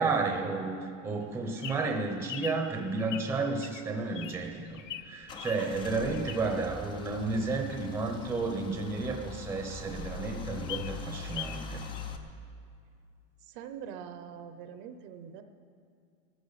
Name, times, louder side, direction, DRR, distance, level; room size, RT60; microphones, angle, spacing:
voice 1, 0.0-11.8, right 3 dB, 5° right, 3 dB, 0.7 m, -32 dB
Bird vocalization bird call bird song, 1.2-6.7 7.1-9.3 9.7-9.8 10.0-10.1 10.4-11.7 11.9-12.0, left 11 dB, 70° left, 0.9 m, -43 dB
Car / Engine starting / Idling, 4.3-12.2, left 4 dB, 15° left, 0.4 m, -42 dB
voice 2, 13.4-15.4, right 8 dB, 45° right, 9 dB, 0.8 m, -43 dB
18.0 x 14.0 x 4.1 m, 2.3 s
supercardioid pair, 155°, 39 cm